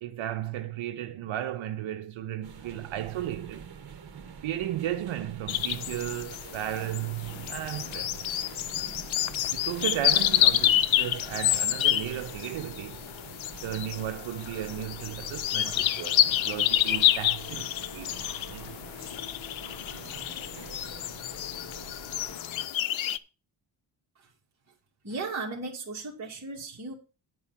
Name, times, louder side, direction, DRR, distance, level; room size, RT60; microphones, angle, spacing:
voice 1, 0.0-3.7 4.4-8.1 9.5-13.0 13.6-18.1 18.5-18.7, right 12 dB, 90° right, 0.8 m, -35 dB
sound 1, 2.4-22.4, right 6 dB, 55° right, 1.7 m, -46 dB
sound 2, 5.5-23.2, left 12 dB, 85° left, 0.6 m, -28 dB
sound 3, 15.6-22.7, left 6 dB, 50° left, 1.1 m, -47 dB
voice 2, 25.0-26.9, right 3 dB, 35° right, 2.4 m, -36 dB
9.3 x 4.7 x 7.4 m
wide cardioid pair, 140°, 46 cm